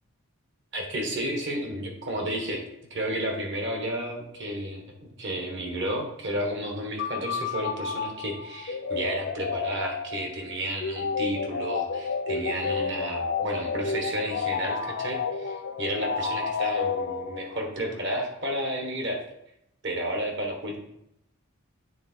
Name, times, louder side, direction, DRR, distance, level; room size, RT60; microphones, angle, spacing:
voice 1, 0.7-2.6 2.9-19.2 19.8-20.8, right 1 dB, 55° right, 2 dB, 1.5 m, -32 dB
sound 1, 7.0-17.7, left 5 dB, 55° left, 0.5 m, -31 dB
9.3 x 3.7 x 4.4 m, 0.77 s
head